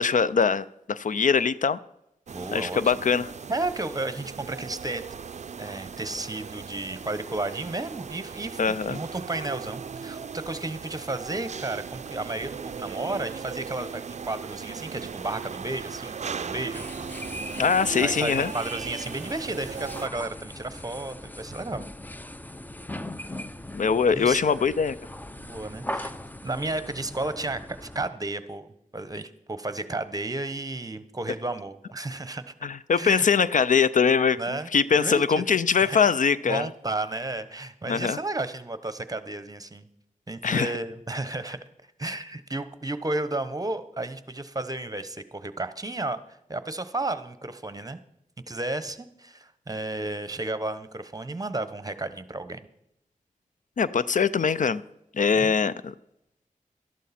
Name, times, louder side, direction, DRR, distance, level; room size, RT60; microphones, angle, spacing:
voice 1, 0.0-1.8 2.5-3.3 8.6-9.0 17.6-18.5 23.7-25.0 32.6-34.4 34.7-36.7 37.9-38.2 40.4-40.7 53.8-54.8 55.1-55.9, left 6 dB, 65° left, 16 dB, 0.4 m, -22 dB
voice 2, 2.3-2.8 3.5-5.0 5.6-16.9 18.0-21.8 24.1-24.4 25.4-26.1 26.4-32.5 32.9-33.3 34.4-34.7 35.0-35.2 35.8-36.0 36.5-39.9 40.3-41.6 42.0-48.0 48.5-52.6 55.3-55.6, right 2 dB, 25° right, 12 dB, 1.0 m, -33 dB
sound 1, 2.3-20.1, right 6 dB, 55° right, 0.4 m, -38 dB
sound 2, 16.7-28.1, left 1 dB, 10° left, 0.6 m, -39 dB
12.5 x 11.5 x 4.3 m, 0.81 s
cardioid pair, 55°, 14 cm